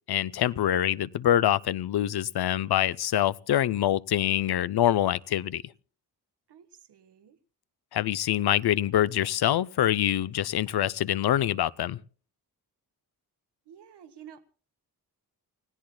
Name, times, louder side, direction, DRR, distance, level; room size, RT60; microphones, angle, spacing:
voice 1, 0.1-5.6 7.9-12.0, left 11 dB, 70° left, 0.7 m, -25 dB
voice 2, 6.5-7.4 13.6-14.5, right 9 dB, 80° right, 1.5 m, -50 dB
29.5 x 17.0 x 2.2 m
wide cardioid pair, 140°, 40 cm